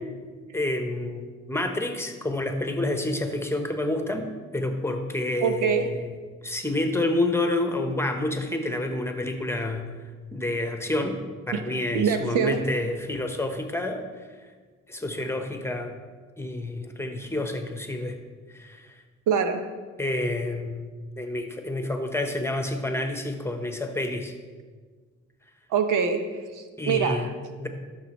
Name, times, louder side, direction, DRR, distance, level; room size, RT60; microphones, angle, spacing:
voice 1, 0.5-4.3 4.5-6.1 6.4-9.8 10.3-11.2 11.5-14.0 14.9-16.0 16.4-18.2 18.5-18.9 20.0-20.9 21.2-24.3 26.8-27.7, left 2 dB, 10° left, 5 dB, 1.0 m, -28 dB
voice 2, 5.4-5.9 11.5-12.6 19.3-19.6 25.7-27.3, right 6 dB, 85° right, 7 dB, 0.8 m, -25 dB
13.0 x 6.6 x 3.1 m, 1.5 s
cardioid pair, 90°, 30 cm